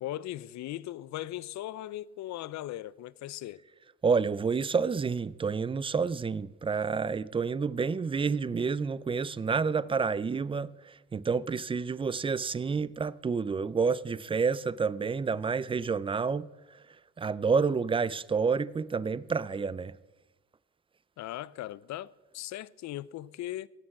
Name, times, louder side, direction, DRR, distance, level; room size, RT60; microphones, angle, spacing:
voice 1, 0.0-3.6 21.2-23.7, left 14 dB, 65° left, 0.5 m, -38 dB
voice 2, 4.0-10.7 11.1-16.5 17.2-19.9, right 5 dB, 20° right, 0.3 m, -29 dB
16.5 x 6.4 x 5.9 m
cardioid pair, 90°, 30 cm